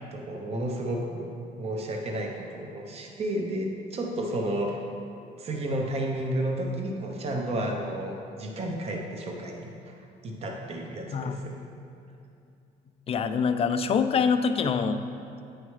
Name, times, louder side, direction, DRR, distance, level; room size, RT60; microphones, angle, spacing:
voice 1, 0.1-1.3 1.6-4.8 5.4-9.9 10.2-11.5, right 1 dB, 35° right, 1 dB, 0.7 m, -32 dB
voice 2, 13.1-15.0, left 6 dB, 35° left, 9 dB, 0.4 m, -25 dB
9.2 x 4.7 x 3.1 m, 2.6 s
cardioid pair, 110°, 17 cm